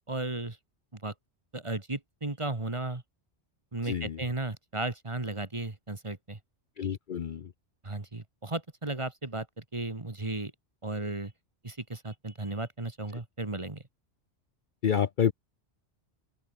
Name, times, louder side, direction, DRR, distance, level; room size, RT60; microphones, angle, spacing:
voice 1, 0.1-0.6 0.9-1.1 1.5-3.0 3.7-6.4 7.8-10.5 10.8-11.3 11.6-13.8, right 2 dB, 25° right, 1.8 m, -35 dB
voice 2, 3.8-4.2 6.8-7.5 14.8-15.3, left 8 dB, 50° left, 0.8 m, -28 dB
open air
omnidirectional pair, 1.2 m